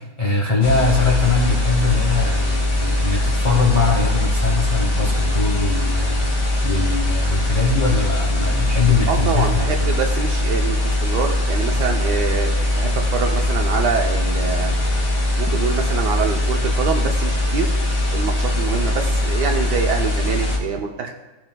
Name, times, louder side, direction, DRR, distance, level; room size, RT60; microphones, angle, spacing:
voice 1, 0.0-9.9, left 4 dB, 30° left, -1 dB, 0.9 m, -22 dB
sound 1, 0.6-20.6, left 1 dB, 85° left, 2.9 m, -21 dB
voice 2, 9.1-14.8 15.4-17.8 18.1-21.1, right 6 dB, 70° right, 3 dB, 1.2 m, -25 dB
15.0 x 6.2 x 2.2 m, 1.1 s
omnidirectional pair, 2.1 m